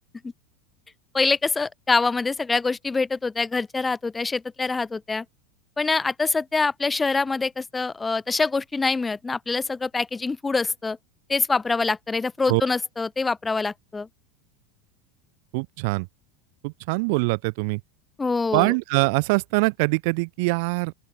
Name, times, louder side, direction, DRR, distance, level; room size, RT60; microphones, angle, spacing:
voice 1, 1.1-5.2 5.8-11.0 11.3-14.1 18.2-18.7, left 4 dB, 10° left, 1.2 m, -25 dB
voice 2, 15.5-16.1 16.6-17.8 18.5-20.9, right 30 dB, 60° right, 1.1 m, -23 dB
open air
supercardioid pair, 145°, 0 cm